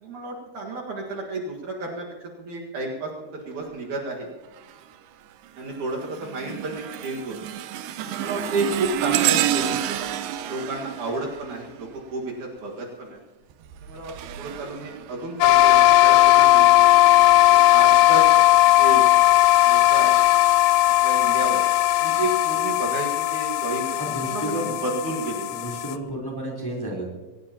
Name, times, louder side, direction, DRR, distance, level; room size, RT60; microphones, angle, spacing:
voice 1, 0.0-4.3 5.6-7.4 8.1-10.0 10.5-13.2 13.8-16.9 17.5-18.3 18.8-19.1 19.6-20.2 21.0-21.7 22.0-25.6, right 2 dB, 60° right, -2 dB, 3.1 m, -31 dB
sound 1, 4.6-5.0 5.4-12.3 13.5-15.7 16.3-16.5 17.4-17.5, right 12 dB, 75° right, 2.3 m, -29 dB
sound 2, 8.1-10.1, equal, 35° left, 2.2 m, -42 dB
sound 3, 15.4-26.0, left 16 dB, 80° left, 1.7 m, -17 dB
voice 2, 24.0-24.8 25.5-27.0, right 1 dB, 5° left, -3 dB, 3.4 m, -31 dB
23.0 x 18.5 x 2.9 m, 1.2 s
omnidirectional pair, 4.1 m